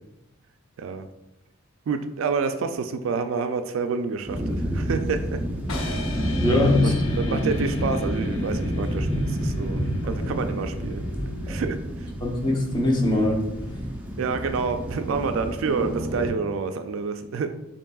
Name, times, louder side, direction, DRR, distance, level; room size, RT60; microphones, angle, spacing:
voice 1, 0.8-1.1 1.9-5.4 5.8-6.1 6.7-11.1 11.5-12.1 14.2-17.5, right 5 dB, 70° right, 8 dB, 0.3 m, -28 dB
sound 1, 4.3-16.3, equal, 5° right, 0.5 m, -29 dB
sound 2, 5.7-11.7, left 3 dB, 80° left, 0.7 m, -39 dB
voice 2, 6.4-7.0 7.3-7.4 11.5-11.6 12.2-13.4, left 1 dB, 20° left, -1 dB, 0.8 m, -22 dB
6.9 x 2.9 x 2.3 m, 0.93 s
head